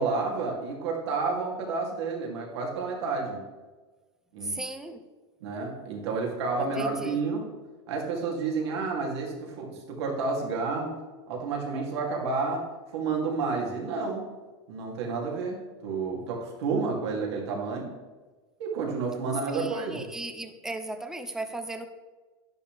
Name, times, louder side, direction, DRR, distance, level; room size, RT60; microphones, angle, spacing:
voice 1, 0.0-3.4 4.3-4.6 5.4-7.5 7.9-11.0 11.3-14.3 14.7-17.9 18.6-20.1, right 4 dB, 75° right, -1 dB, 2.9 m, -30 dB
voice 2, 4.4-5.0 6.6-7.2 19.5-21.9, right 2 dB, 5° right, 8 dB, 0.6 m, -36 dB
11.0 x 10.0 x 3.4 m, 1.3 s
supercardioid pair, 155°, 14 cm